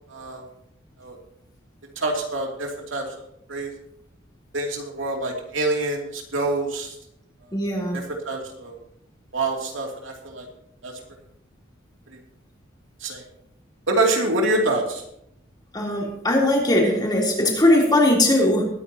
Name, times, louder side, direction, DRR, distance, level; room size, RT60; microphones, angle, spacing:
voice 1, 0.1-0.4 1.0-1.2 2.0-3.1 3.5-3.7 4.5-6.9 7.9-8.8 9.3-10.5 10.8-10.9 13.0-13.2 13.9-15.0, right 2 dB, 85° right, 1 dB, 2.7 m, -26 dB
voice 2, 7.5-8.0 15.7-18.7, left 1 dB, 20° left, -2 dB, 3.4 m, -19 dB
21.0 x 9.9 x 2.9 m, 0.75 s
head